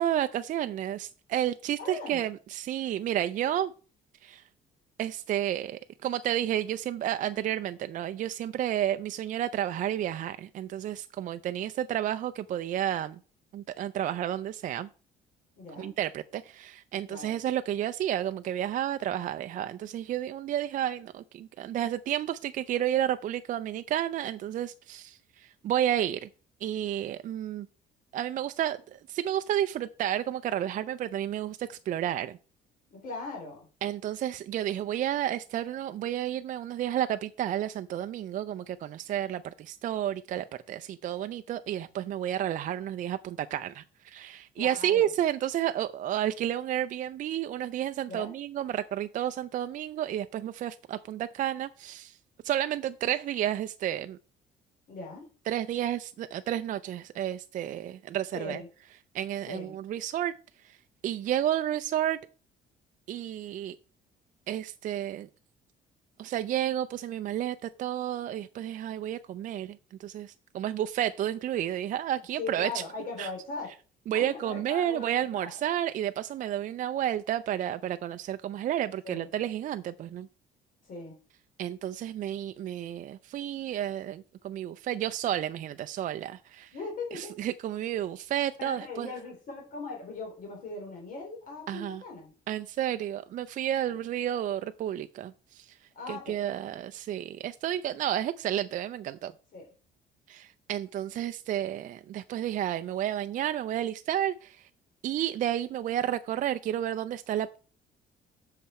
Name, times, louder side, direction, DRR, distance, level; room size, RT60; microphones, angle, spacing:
voice 1, 0.0-3.7 4.2-4.4 5.0-13.2 13.5-14.9 15.8-26.3 26.6-27.7 28.1-32.3 33.8-52.2 52.4-54.2 55.5-58.6 59.1-60.3 60.6-60.8 61.0-62.2 63.1-63.8 64.5-65.3 66.2-72.8 73.2-73.3 74.1-80.3 81.6-86.7 87.1-89.1 91.7-92.0 92.5-95.7 96.1-99.3 100.3-104.7 105.0-107.6, right 11 dB, 50° right, 0.4 m, -31 dB
voice 2, 1.8-2.2 15.6-15.9 17.1-17.4 32.9-33.7 44.6-45.1 48.1-48.3 54.9-55.3 58.3-58.7 59.5-59.7 72.4-73.7 74.1-75.6 79.0-79.3 80.8-81.2 86.7-87.3 88.6-92.3 93.9-94.0 95.9-96.5 99.5-99.7, left 3 dB, 55° left, 3.3 m, -39 dB
7.5 x 5.7 x 4.2 m
cardioid pair, 110°, 17 cm